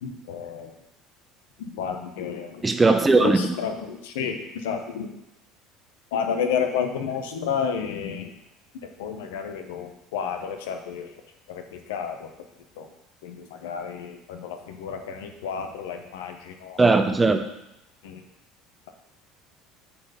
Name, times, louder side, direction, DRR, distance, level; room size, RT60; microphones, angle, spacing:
voice 1, 0.0-0.7 1.6-2.5 3.2-4.4 4.6-5.1 6.1-8.3 9.0-11.1 11.5-11.6 11.9-12.1 12.8-12.9 13.2-16.8 18.0-18.2, left 7 dB, 70° left, 5 dB, 0.9 m, -30 dB
voice 2, 2.6-3.6 16.8-17.4, right 3 dB, 15° right, 7 dB, 0.8 m, -19 dB
7.7 x 4.3 x 5.6 m, 0.87 s
figure-of-eight pair, 65°, 0 cm